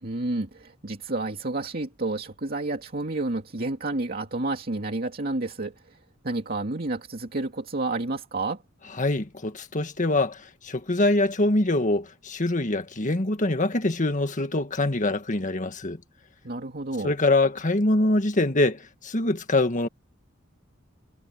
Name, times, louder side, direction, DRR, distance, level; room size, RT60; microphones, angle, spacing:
voice 1, 0.0-6.0 6.2-8.6 16.4-17.1, right 2 dB, 50° right, 2.4 m, -30 dB
voice 2, 9.0-16.0 17.0-19.9, left 2 dB, 40° left, 1.7 m, -24 dB
head